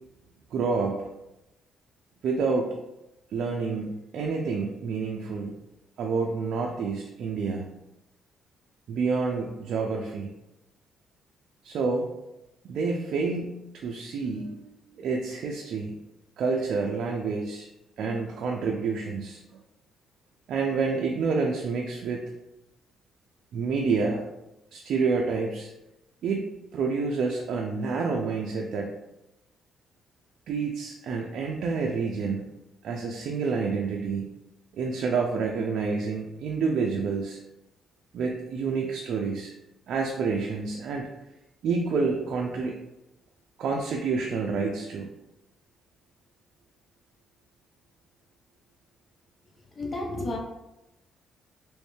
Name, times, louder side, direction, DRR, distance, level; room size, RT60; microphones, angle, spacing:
voice 1, 0.5-1.1 2.2-2.7 3.3-5.5 6.0-7.7 8.9-10.3 11.6-12.1 12.6-16.0 16.4-17.7 18.0-19.4 20.5-22.2 23.5-24.2 24.7-25.7 26.2-28.9 30.5-32.4 32.8-34.3 34.7-37.4 38.1-39.5 39.9-41.1 41.6-42.8 43.6-45.1, right 4 dB, 70° right, 0 dB, 0.4 m, -28 dB
voice 2, 49.8-50.4, left 2 dB, 35° left, -1 dB, 0.8 m, -31 dB
3.1 x 3.1 x 3.1 m, 0.94 s
cardioid pair, 90°, 0 cm